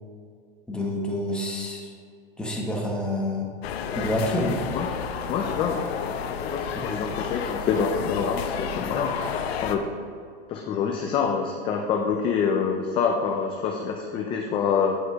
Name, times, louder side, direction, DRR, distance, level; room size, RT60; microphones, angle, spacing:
voice 1, 0.7-1.9 2.4-3.5 3.9-4.6 6.7-6.8, left 1 dB, 5° left, -2 dB, 1.0 m, -28 dB
sound 1, 3.6-9.8, left 7 dB, 85° left, 0.8 m, -31 dB
voice 2, 4.7-9.1 9.6-9.9 10.5-15.0, left 6 dB, 20° left, 2 dB, 0.3 m, -26 dB
8.2 x 5.0 x 4.6 m, 2.2 s
supercardioid pair, 150°, 30 cm